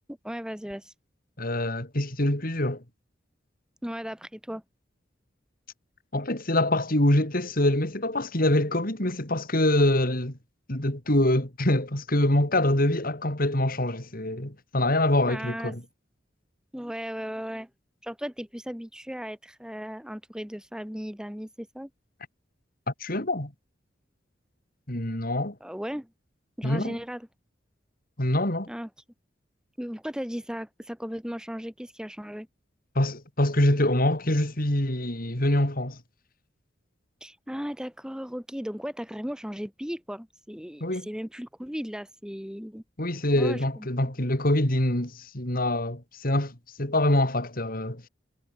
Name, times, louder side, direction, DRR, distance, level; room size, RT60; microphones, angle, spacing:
voice 1, 0.1-0.9 3.8-4.6 15.3-15.8 16.7-17.7 18.0-21.9 25.6-26.1 26.6-27.3 28.7-28.9 29.8-32.5 37.2-42.8 43.3-43.9, equal, 5° right, 1.9 m, -36 dB
voice 2, 1.4-2.8 6.1-10.3 10.7-15.8 23.0-23.5 24.9-25.6 26.6-27.0 28.2-28.7 33.0-36.0 40.8-41.1 43.0-48.0, left 1 dB, 50° left, 4.0 m, -25 dB
head